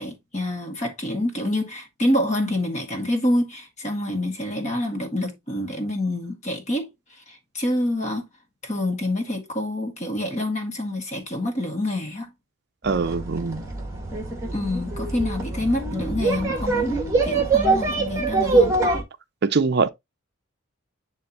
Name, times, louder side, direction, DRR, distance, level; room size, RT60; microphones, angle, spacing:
voice 1, 0.0-6.9 7.3-8.2 8.6-12.3 14.5-18.8, left 1 dB, 30° left, 1.7 m, -27 dB
voice 2, 12.8-13.6 19.4-19.9, right 4 dB, 50° right, 0.5 m, -22 dB
sound 1, 12.9-19.0, right 3 dB, 15° right, 1.8 m, -24 dB
10.5 x 3.5 x 2.9 m
head